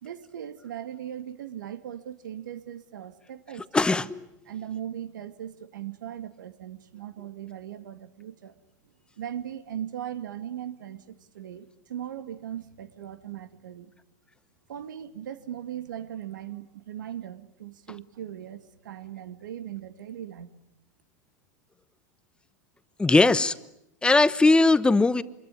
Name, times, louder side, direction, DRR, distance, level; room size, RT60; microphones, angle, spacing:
voice 1, 0.0-3.8 4.5-8.6 9.2-13.9 14.7-20.5 20.8-20.9, right 10 dB, 90° right, 11 dB, 2.1 m, -39 dB
voice 2, 3.7-4.3 23.0-23.5 24.0-25.2, left 3 dB, 10° left, 14 dB, 1.0 m, -19 dB
26.0 x 22.0 x 9.7 m, 0.83 s
supercardioid pair, 120°, 10 cm